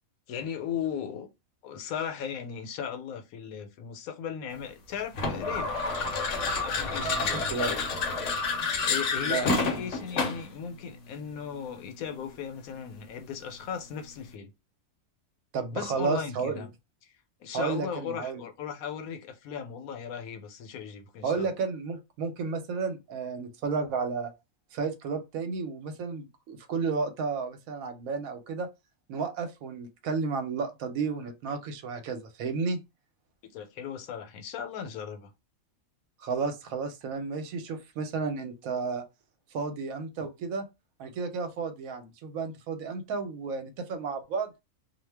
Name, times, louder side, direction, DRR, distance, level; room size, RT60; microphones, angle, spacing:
voice 1, 0.3-1.3 1.6-5.7 6.6-7.4 8.9-14.5 15.7-16.7 17.0-17.1 17.4-21.5 33.4-35.3, left 7 dB, 85° left, 1.1 m, -37 dB
sound 1, 5.1-10.5, left 4 dB, 65° left, 0.9 m, -29 dB
voice 2, 6.9-7.7 9.3-9.9 15.5-16.7 17.5-18.4 21.2-24.3 24.7-28.7 29.1-32.8 36.2-39.0 39.5-40.7 41.0-44.5, right 5 dB, 85° right, 1.1 m, -32 dB
2.4 x 2.2 x 3.3 m
omnidirectional pair, 1.4 m